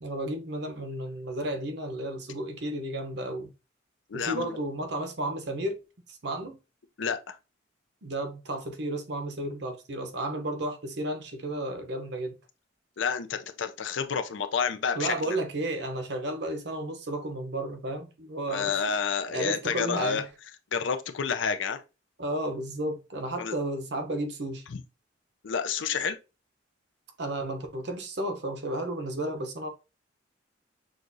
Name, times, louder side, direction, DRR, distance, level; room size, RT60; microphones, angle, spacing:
voice 1, 0.0-3.5 4.1-5.8 6.1-6.6 8.0-12.3 14.9-19.0 19.3-20.2 22.2-24.6 27.2-29.7, right 1 dB, 60° right, 0.8 m, -33 dB
voice 2, 4.1-4.6 7.0-7.3 13.0-15.4 18.5-20.2 20.7-21.8 23.4-23.6 24.7-24.8 25.4-26.2, left 6 dB, 80° left, 0.5 m, -29 dB
6.3 x 2.5 x 2.6 m
head